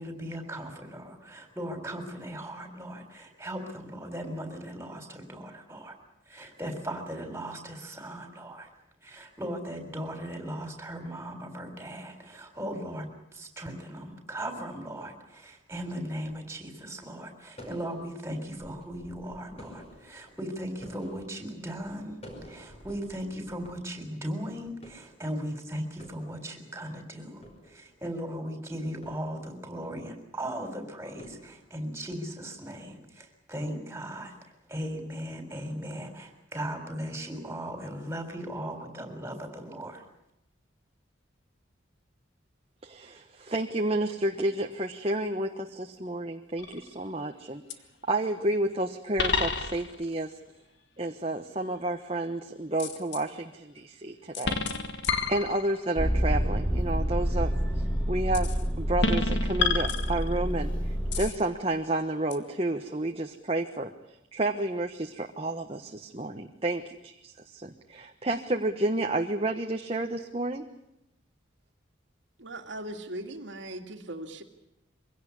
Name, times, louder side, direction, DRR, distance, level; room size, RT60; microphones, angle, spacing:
voice 1, 0.0-6.0 6.3-8.7 9.0-34.3 34.7-40.0, equal, 10° right, 6 dB, 3.8 m, -38 dB
sound 1, 16.3-16.6 17.6-23.7 23.9-24.0 24.5-25.6 25.8-26.9 27.3-28.3 29.0-29.9 31.2-32.2, equal, 30° left, 5.1 m, -50 dB
voice 2, 42.8-47.6 48.1-50.3 51.0-54.6 55.3-57.5 58.1-60.7 61.2-63.9 64.3-70.6, right 2 dB, 30° right, 4 dB, 1.2 m, -30 dB
sound 2, 46.6-47.0 47.7-47.8 49.2-50.1 52.8-53.2 54.3-55.9 58.3-58.6 59.0-60.6 61.1-61.4 62.3-62.4, left 4 dB, 60° left, 1.8 m, -30 dB
Motor vehicle (road), 56.0-61.3, equal, 5° left, 2.5 m, -28 dB
voice 3, 72.4-74.4, right 1 dB, 65° right, 4 dB, 2.3 m, -39 dB
23.5 x 17.0 x 9.8 m, 0.84 s
head